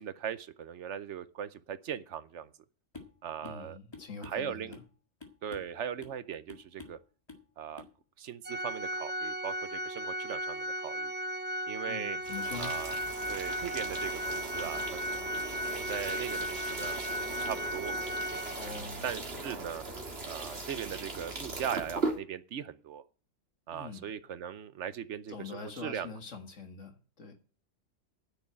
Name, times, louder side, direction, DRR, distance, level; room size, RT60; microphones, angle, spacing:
voice 1, 0.0-2.5 3.2-3.8 4.2-4.8 5.4-7.0 7.6-7.9 8.2-11.1 11.7-12.2 12.6-13.0 13.3-15.2 15.7-18.0 18.6-19.8 20.3-23.0 23.7-26.2, right 8 dB, 65° right, 1.0 m, -39 dB
sound 1, 2.9-3.2 3.4-3.6 3.9-4.9 5.2-5.7 6.0-6.2 6.5-7.0 7.3-7.5 7.8-7.9, left 3 dB, 20° left, 1.8 m, -49 dB
voice 2, 3.4-4.8 11.9-12.7 18.6-19.1 23.7-24.1 25.3-27.3, left 4 dB, 70° left, 2.2 m, -44 dB
Organ, 8.4-19.0, equal, 10° right, 0.6 m, -36 dB
sound 2, 12.2-22.2, right 3 dB, 50° right, 2.2 m, -39 dB
10.0 x 6.4 x 8.7 m
omnidirectional pair, 1.3 m